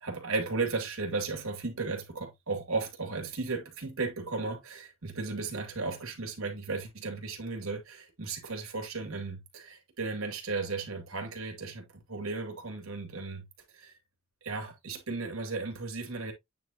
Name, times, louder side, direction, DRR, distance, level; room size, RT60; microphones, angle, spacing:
voice 1, 0.0-13.5 13.7-13.9 14.4-16.3, right 3 dB, 80° right, 2.6 m, -35 dB
9.1 x 4.3 x 2.9 m
head